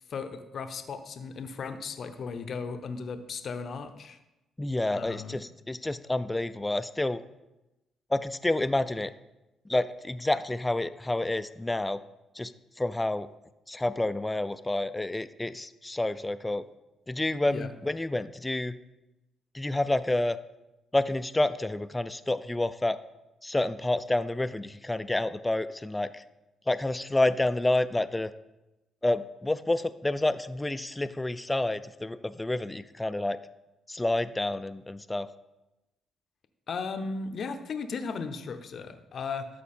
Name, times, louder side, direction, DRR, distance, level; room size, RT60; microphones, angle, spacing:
voice 1, 0.1-4.2 4.9-5.4 17.5-17.7 36.7-39.5, left 5 dB, 55° left, 9 dB, 0.7 m, -36 dB
voice 2, 4.6-7.2 8.1-9.1 9.7-12.0 12.4-12.5 12.8-13.3 13.7-16.6 17.1-18.7 19.5-20.4 20.9-23.0 23.4-26.2 26.7-28.3 29.0-33.4 33.9-35.3, left 2 dB, 15° left, 14 dB, 0.4 m, -29 dB
12.5 x 4.5 x 4.3 m, 0.98 s
cardioid pair, 90°, 0 cm